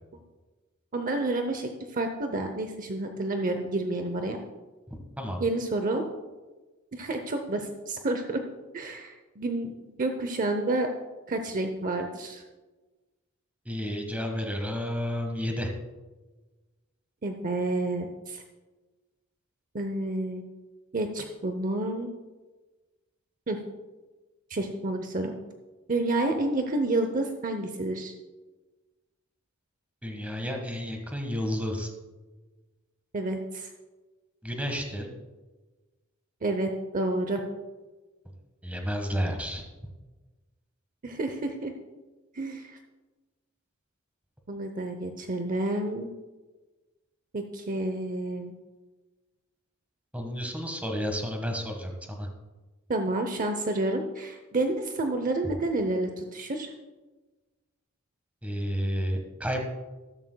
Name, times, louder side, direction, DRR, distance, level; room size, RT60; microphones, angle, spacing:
voice 1, 0.9-4.4 5.4-6.0 6.9-8.4 8.7-10.9 11.3-12.4 17.2-18.4 19.7-20.4 20.9-22.1 23.5-23.6 24.5-25.3 25.9-28.1 33.1-33.7 36.4-37.4 41.0-41.7 42.3-42.8 44.5-46.1 47.3-48.5 52.9-56.7, right 2 dB, 40° right, 6 dB, 0.7 m, -29 dB
voice 2, 4.9-5.4 13.6-15.7 30.0-31.9 34.4-35.1 38.6-39.6 50.1-52.3 58.4-59.6, equal, 5° right, 3 dB, 1.4 m, -31 dB
13.0 x 13.0 x 2.3 m, 1.2 s
head